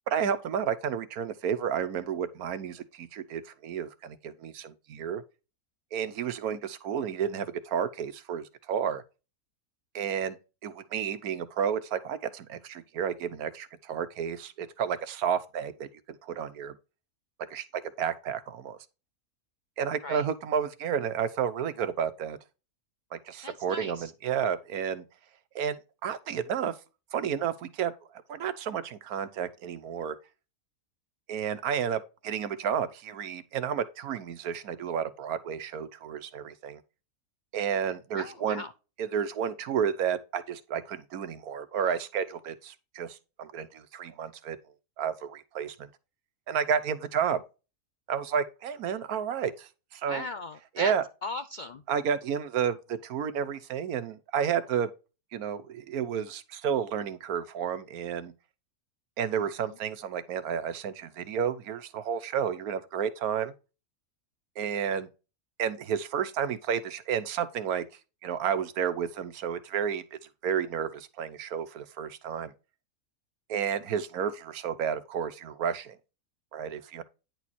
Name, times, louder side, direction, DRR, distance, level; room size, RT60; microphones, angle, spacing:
voice 1, 0.1-5.2 5.9-9.0 9.9-10.4 10.6-16.7 17.5-17.6 18.0-18.8 19.8-22.4 23.1-25.0 25.5-25.8 26.0-26.7 27.1-27.9 28.3-30.1 31.3-36.8 37.5-38.6 39.0-44.6 45.0-45.9 46.5-47.4 48.1-50.2 50.8-51.0 51.9-54.9 55.3-58.3 59.2-63.5 64.6-65.1 65.6-67.8 68.2-70.0 70.4-72.5 73.5-76.0 76.5-77.0, right 8 dB, 85° right, 1.3 m, -31 dB
voice 2, 23.4-24.1 38.2-38.7 50.1-50.9 51.2-51.8 59.6-59.7, left 2 dB, 80° left, 0.4 m, -38 dB
9.9 x 4.6 x 4.1 m
omnidirectional pair, 1.5 m